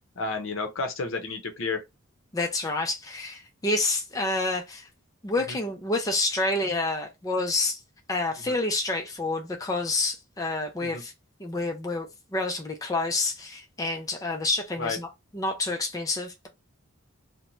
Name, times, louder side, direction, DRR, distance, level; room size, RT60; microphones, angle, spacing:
voice 1, 0.2-1.8 5.5-5.6 8.4-8.5 10.8-11.0 14.8-15.0, left 3 dB, 60° left, 0.6 m, -31 dB
voice 2, 2.3-4.9 5.2-7.8 8.1-11.1 11.4-15.1 15.3-16.5, left 2 dB, 15° left, 0.4 m, -28 dB
2.6 x 2.1 x 2.9 m
head